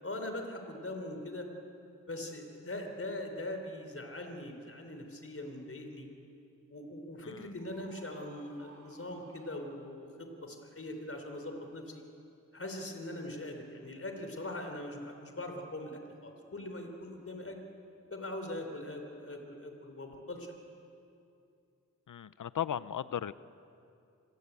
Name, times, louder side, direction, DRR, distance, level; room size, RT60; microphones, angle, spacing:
voice 1, 0.0-1.5 2.1-6.1 6.7-12.0 12.5-17.6 18.1-20.5, left 1 dB, 45° left, 4 dB, 4.1 m, -41 dB
voice 2, 7.2-7.5 22.1-23.3, left 9 dB, 75° left, 16 dB, 0.7 m, -36 dB
Screaming, 7.6-10.3, right 3 dB, 75° right, 5.5 m, -58 dB
27.5 x 21.0 x 8.4 m, 2.6 s
cardioid pair, 60°, 32 cm